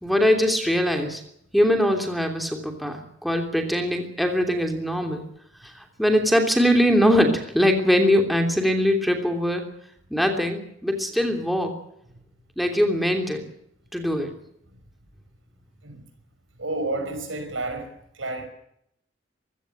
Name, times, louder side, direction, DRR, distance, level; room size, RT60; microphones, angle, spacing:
voice 1, 0.0-1.2 1.5-5.2 5.6-9.6 10.1-11.7 12.6-13.4 13.9-14.3, equal, ahead, 5 dB, 3.0 m, -22 dB
voice 2, 16.5-18.5, right 2 dB, 90° right, 7 dB, 5.3 m, -31 dB
23.0 x 16.5 x 7.8 m, 0.73 s
head